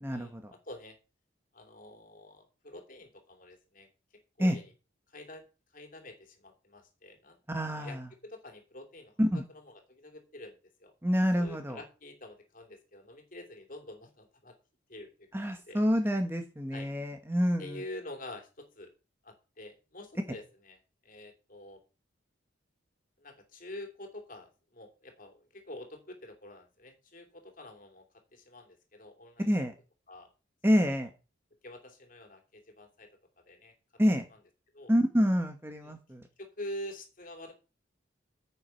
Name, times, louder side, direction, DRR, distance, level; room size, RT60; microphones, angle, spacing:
voice 1, 0.0-0.5 4.4-4.6 7.5-8.1 9.2-9.4 11.0-11.8 15.3-17.8 29.5-29.7 30.6-31.1 34.0-34.2 34.9-36.2, equal, 10° right, 6 dB, 1.3 m, -27 dB
voice 2, 0.7-1.0 1.5-3.9 4.4-4.7 5.1-5.4 5.7-7.4 7.6-10.9 11.4-14.5 14.9-15.1 15.3-15.8 16.7-16.9 17.6-18.9 19.2-21.8 23.2-28.0 28.3-29.5 30.1-30.3 30.9-31.1 31.6-33.1 33.4-33.7 34.7-34.9 35.8-36.0 36.4-37.5, left 1 dB, 45° left, 4 dB, 3.1 m, -47 dB
9.7 x 8.1 x 5.8 m, 0.32 s
head